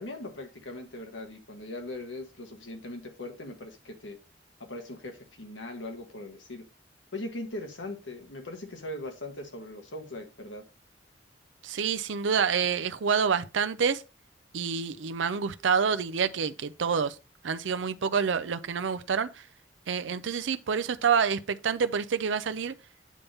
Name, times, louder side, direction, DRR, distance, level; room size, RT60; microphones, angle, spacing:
voice 1, 0.0-4.2 4.6-6.7 7.1-10.6, left 1 dB, 85° left, 1.8 m, -40 dB
voice 2, 11.6-14.0 14.5-17.2 17.4-19.4 19.9-22.7, right 6 dB, 85° right, 0.5 m, -27 dB
8.4 x 3.5 x 5.4 m
head